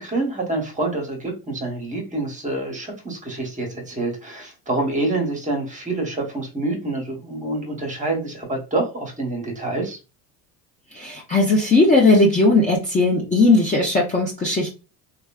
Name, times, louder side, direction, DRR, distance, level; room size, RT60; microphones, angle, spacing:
voice 1, 0.0-10.0, right 2 dB, 15° right, 2 dB, 0.9 m, -27 dB
voice 2, 11.0-14.7, left 2 dB, 15° left, -2 dB, 0.5 m, -17 dB
3.1 x 2.3 x 2.3 m, 0.30 s
supercardioid pair, 115°, 45 cm